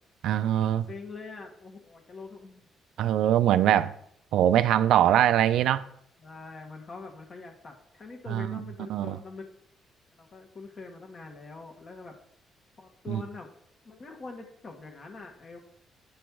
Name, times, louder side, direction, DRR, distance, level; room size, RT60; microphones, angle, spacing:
voice 1, 0.2-0.9 3.0-3.9 4.3-5.8 8.3-8.6 8.9-9.2 13.1-13.2, right 11 dB, 80° right, 0.4 m, -22 dB
voice 2, 0.9-2.6 6.2-9.5 10.2-12.2 12.8-13.5 13.8-15.6, left 4 dB, 40° left, 1.2 m, -44 dB
8.3 x 3.1 x 5.8 m
cardioid pair, 90°, 0 cm